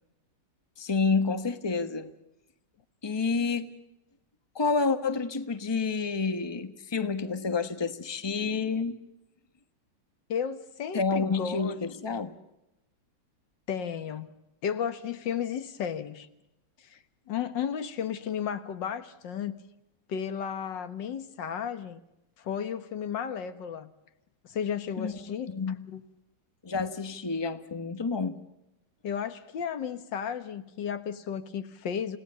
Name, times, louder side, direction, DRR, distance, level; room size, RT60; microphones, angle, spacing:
voice 1, 0.8-2.1 3.0-3.7 4.5-9.0 10.9-12.3 25.0-25.2 25.5-25.8 26.6-28.4, left 4 dB, 15° left, 1.1 m, -29 dB
voice 2, 10.3-11.8 13.7-14.3 14.6-16.3 16.8-17.0 17.3-19.6 20.1-22.0 22.4-23.9 24.4-25.5 25.9-26.0 29.0-32.2, left 8 dB, 85° left, 2.0 m, -33 dB
29.5 x 17.5 x 6.9 m
omnidirectional pair, 1.9 m